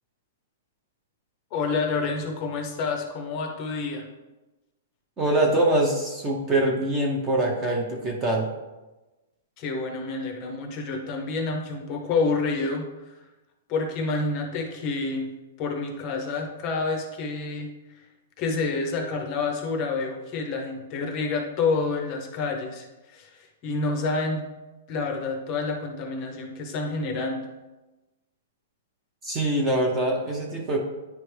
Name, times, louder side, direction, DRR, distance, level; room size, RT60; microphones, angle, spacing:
voice 1, 1.5-4.0 9.6-13.1 13.7-15.3 15.6-17.7 18.4-24.4 24.9-27.5, left 3 dB, 25° left, 3 dB, 0.6 m, -28 dB
voice 2, 5.2-8.5 29.2-30.8, right 1 dB, 15° right, 0 dB, 0.6 m, -24 dB
9.6 x 3.3 x 3.2 m, 1.1 s
hypercardioid pair, 175°, 0 cm